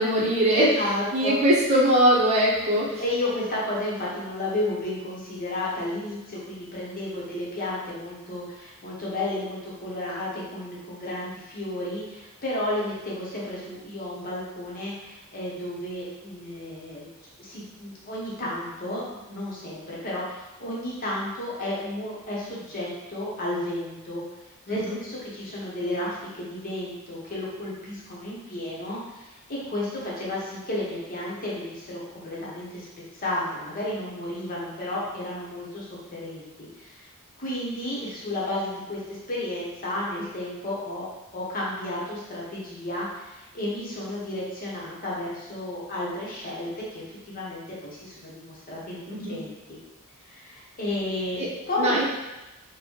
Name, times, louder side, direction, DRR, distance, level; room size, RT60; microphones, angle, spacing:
voice 1, 0.0-0.7 1.1-3.0 24.7-25.0 49.1-49.4 51.4-51.5 51.8-52.1, right 1 dB, 30° right, -6 dB, 0.8 m, -21 dB
voice 2, 0.5-1.4 3.0-17.1 17.4-24.2 24.7-32.9 33.2-37.1 37.4-41.1 41.3-49.8 50.2-51.4 51.7-52.0, left 1 dB, 40° left, -6 dB, 1.0 m, -32 dB
3.9 x 2.2 x 3.1 m, 1.1 s
head